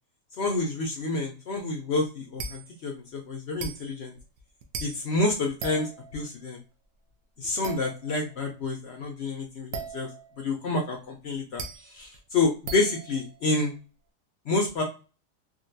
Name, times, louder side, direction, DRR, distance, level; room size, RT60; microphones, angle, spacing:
voice 1, 0.4-4.1 4.8-6.6 7.4-10.1 10.4-13.7 14.5-14.8, left 3 dB, 75° left, 1 dB, 0.6 m, -29 dB
sound 1, 2.4-2.8 3.6-6.3 7.6-8.3 9.7-10.5 11.3-13.7, right 5 dB, 70° right, 0.8 m, -39 dB
3.8 x 2.1 x 2.6 m, 0.33 s
omnidirectional pair, 1.8 m